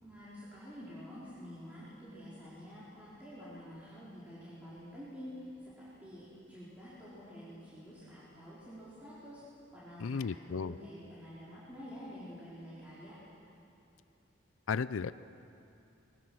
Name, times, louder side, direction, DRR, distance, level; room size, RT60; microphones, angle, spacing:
voice 1, 0.0-9.4 9.7-13.2, equal, 5° right, -12 dB, 4.4 m, -49 dB
voice 2, 10.0-10.7 14.7-15.1, left 5 dB, 80° left, 15 dB, 0.5 m, -34 dB
24.5 x 21.5 x 6.3 m, 2.7 s
head